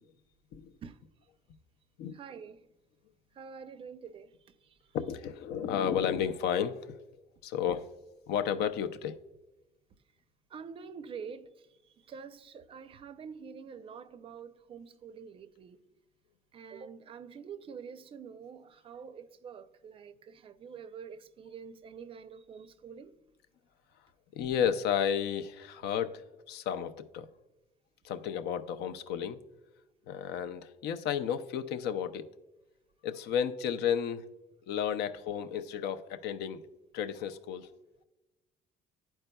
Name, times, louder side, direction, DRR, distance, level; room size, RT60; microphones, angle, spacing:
voice 1, 2.1-2.6 3.3-4.9 10.5-15.8 16.5-23.1, right 6 dB, 35° right, 0.4 m, -47 dB
voice 2, 4.9-7.1 7.4-7.9 8.3-9.2 24.3-27.3 28.0-29.4 30.1-32.2 33.0-34.2 34.7-36.6 36.9-37.7, left 8 dB, 85° left, 0.6 m, -32 dB
12.0 x 4.4 x 2.2 m
cardioid pair, 160°, 17 cm